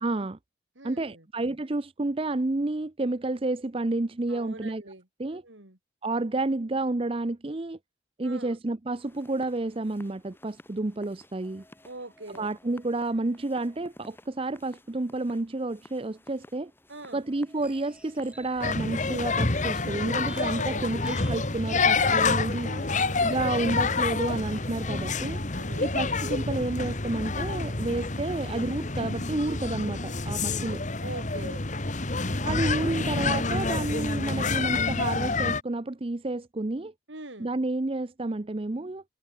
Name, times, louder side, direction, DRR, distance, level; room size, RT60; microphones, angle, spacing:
voice 1, 0.0-0.4 0.8-4.8 5.2-5.4 6.0-7.8 8.2-11.6 12.4-16.7 17.1-22.7 23.2-25.4 25.8-30.8 32.4-36.9 37.4-39.0, right 2 dB, 30° right, 0.6 m, -30 dB
voice 2, 0.8-1.3 4.3-5.0 5.3-5.8 8.2-8.6 11.8-12.5 16.9-17.2 20.5-21.1 22.6-23.5 25.5-26.0 31.0-31.7 37.1-37.5, right 2 dB, 75° right, 4.7 m, -43 dB
sound 1, 8.9-26.6, left 1 dB, 10° left, 6.6 m, -55 dB
sound 2, 17.6-23.1, right 1 dB, 5° right, 3.1 m, -50 dB
sound 3, 18.6-35.6, left 3 dB, 40° left, 1.7 m, -28 dB
head